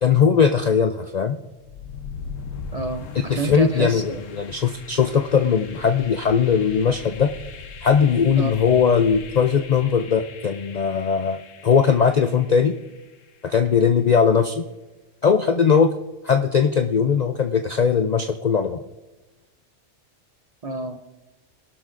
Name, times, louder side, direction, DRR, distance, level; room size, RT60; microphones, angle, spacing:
voice 1, 0.0-1.4 3.3-7.3 7.8-12.8 13.4-14.7 15.2-15.9 16.2-18.8, left 6 dB, 60° left, 7 dB, 0.4 m, -19 dB
sound 1, 1.6-13.5, left 5 dB, 80° left, 1.2 m, -40 dB
voice 2, 2.7-4.2 8.4-8.5 20.6-21.2, right 4 dB, 45° right, 7 dB, 0.5 m, -28 dB
23.0 x 12.0 x 2.5 m, 1.1 s
omnidirectional pair, 1.3 m